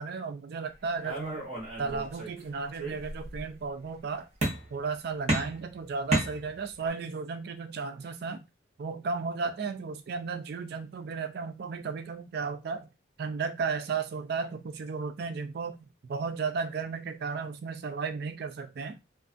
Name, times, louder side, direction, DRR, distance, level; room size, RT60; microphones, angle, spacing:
voice 1, 0.0-1.4 1.8-4.3 4.7-8.4 8.8-12.9 13.2-19.0, right 5 dB, 55° right, 0.3 m, -34 dB
sound 1, 1.0-2.4 2.7-3.5 4.4-4.9 5.3-6.9, right 1 dB, 35° right, 0.8 m, -32 dB
2.5 x 2.4 x 2.4 m
head